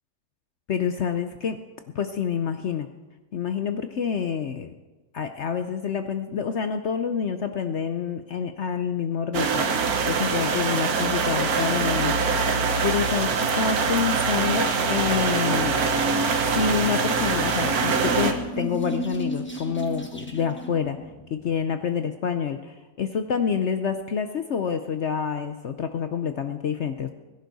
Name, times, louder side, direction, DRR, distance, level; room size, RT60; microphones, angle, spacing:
voice 1, 0.7-1.6 1.9-2.9 3.3-4.7 5.1-9.6 10.1-12.2 12.8-16.0 16.5-21.0 21.3-27.1, left 7 dB, 65° left, 8 dB, 0.7 m, -27 dB
sound 1, 9.3-18.3, right 4 dB, 60° right, 1.5 m, -23 dB
sound 2, 16.5-21.7, equal, 10° left, 0.9 m, -35 dB
21.5 x 11.0 x 4.0 m, 1.2 s
omnidirectional pair, 1.9 m